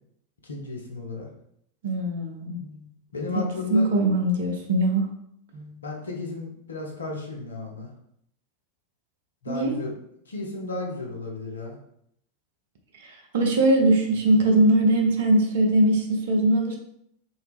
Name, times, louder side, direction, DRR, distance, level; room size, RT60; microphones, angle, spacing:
voice 1, 0.4-1.3 3.1-3.9 5.8-7.9 9.4-10.0 10.3-11.8, left 3 dB, 75° left, 0 dB, 0.8 m, -33 dB
voice 2, 1.8-2.9 3.7-5.1 5.5-5.8 9.5-9.7 13.0-16.8, right 1 dB, 55° right, 3 dB, 0.7 m, -21 dB
2.9 x 2.7 x 3.4 m, 0.72 s
figure-of-eight pair, 90°, 0 cm